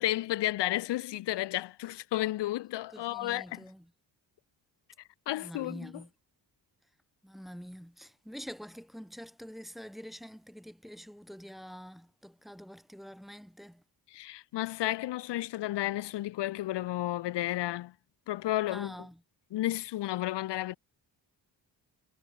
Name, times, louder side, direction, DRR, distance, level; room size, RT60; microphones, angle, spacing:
voice 1, 0.0-3.6 5.3-6.0 14.1-17.9 18.3-19.0 19.5-20.8, left 15 dB, 70° left, 0.5 m, -32 dB
voice 2, 2.9-3.9 5.3-6.1 7.2-13.8 18.7-19.2, equal, ahead, 0.8 m, -46 dB
cardioid pair, 70°, 44 cm